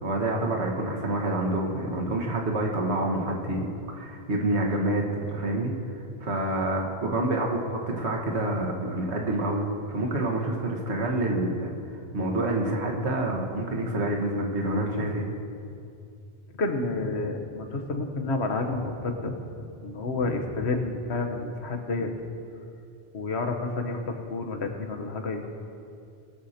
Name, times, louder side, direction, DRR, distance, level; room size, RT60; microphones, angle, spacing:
voice 1, 0.0-5.7 6.2-11.7 12.1-15.3, right 1 dB, 85° right, 0 dB, 1.6 m, -27 dB
voice 2, 16.5-22.1 23.1-25.5, left 3 dB, 80° left, 4 dB, 1.3 m, -30 dB
19.5 x 6.5 x 4.3 m, 2.5 s
omnidirectional pair, 1.1 m